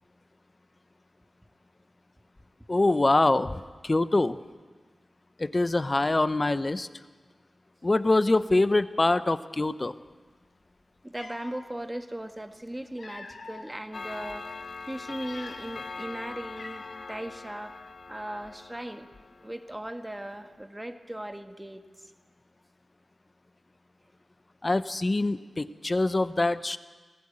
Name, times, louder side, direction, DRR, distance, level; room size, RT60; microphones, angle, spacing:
voice 1, 2.7-4.4 5.4-6.9 7.8-9.9 24.6-26.8, left 2 dB, 35° left, 13 dB, 0.8 m, -24 dB
Cat, 10.6-10.7 11.1-11.6 12.6-13.8 14.3-14.5 15.1-15.9 16.1-16.2 16.6-17.2, left 3 dB, 80° left, 2.7 m, -46 dB
voice 2, 11.0-19.1 19.4-22.1, right 1 dB, 15° right, 6 dB, 1.7 m, -38 dB
Clock, 13.9-19.9, left 4 dB, 65° left, 0.8 m, -42 dB
20.5 x 15.5 x 8.8 m, 1.4 s
cardioid pair, 55°, 0 cm